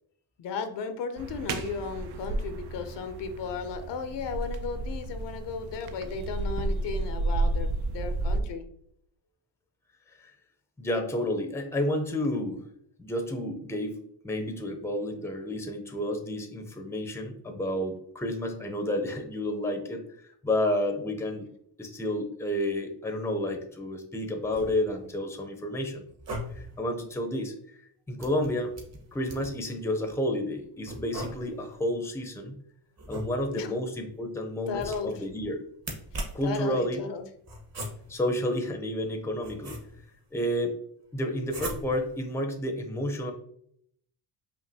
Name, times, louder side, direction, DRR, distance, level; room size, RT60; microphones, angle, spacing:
voice 1, 0.4-8.6 33.5-33.7 34.7-35.1 36.4-37.2, left 5 dB, 70° left, 8 dB, 0.7 m, -35 dB
sound 1, 1.2-8.4, right 2 dB, 60° right, 0.6 m, -32 dB
voice 2, 10.8-12.7 13.0-21.5 21.8-26.0 26.5-28.7 29.1-32.6 33.1-35.6 36.3-37.0 38.1-39.8 40.3-40.8 41.1-43.3, left 1 dB, 5° left, 5 dB, 0.6 m, -31 dB
sound 2, 24.4-25.1 26.1-26.8 28.2-29.7 30.8-31.8 33.0-33.7 34.7-35.3 35.8-36.6 37.5-38.3 39.0-40.2 41.5-42.2, right 1 dB, 35° right, 1.2 m, -39 dB
5.2 x 2.5 x 2.8 m, 0.67 s
cardioid pair, 90°, 45 cm